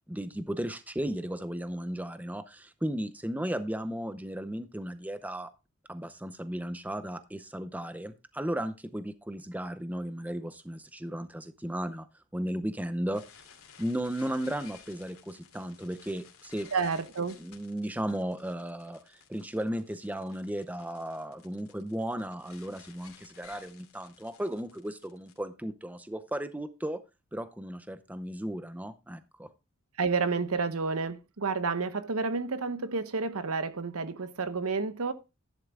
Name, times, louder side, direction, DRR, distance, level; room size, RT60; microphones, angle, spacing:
voice 1, 0.1-5.5 5.9-12.1 12.3-13.2 13.8-16.7 17.4-27.0 27.3-29.5, right 1 dB, 5° right, 0.6 m, -35 dB
sound 1, 13.1-25.4, left 7 dB, 80° left, 2.5 m, -55 dB
voice 2, 16.7-17.4 30.0-35.1, right 4 dB, 90° right, 1.0 m, -30 dB
11.5 x 10.5 x 2.3 m
head